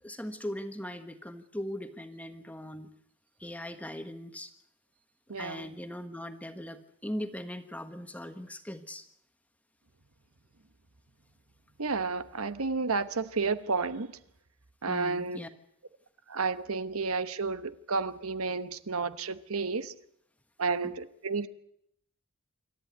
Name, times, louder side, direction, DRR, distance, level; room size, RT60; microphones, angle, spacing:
voice 1, 0.0-2.9 3.4-4.5 5.4-9.1 14.9-15.5, equal, 5° left, 1.4 m, -39 dB
voice 2, 5.3-5.7 11.8-14.1 14.8-15.4 16.3-19.9 20.6-21.5, right 4 dB, 85° right, 1.1 m, -31 dB
26.5 x 13.5 x 9.4 m
head